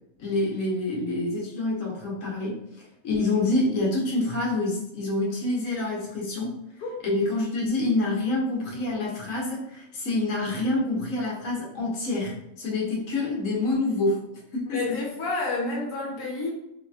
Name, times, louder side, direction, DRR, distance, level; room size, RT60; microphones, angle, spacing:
voice 1, 0.2-2.6 3.0-6.5 7.0-14.2 14.5-15.0, left 2 dB, 60° left, -3 dB, 1.2 m, -27 dB
voice 2, 14.7-16.5, left 3 dB, 85° left, -2 dB, 1.2 m, -29 dB
3.2 x 2.8 x 2.3 m, 0.83 s
omnidirectional pair, 1.6 m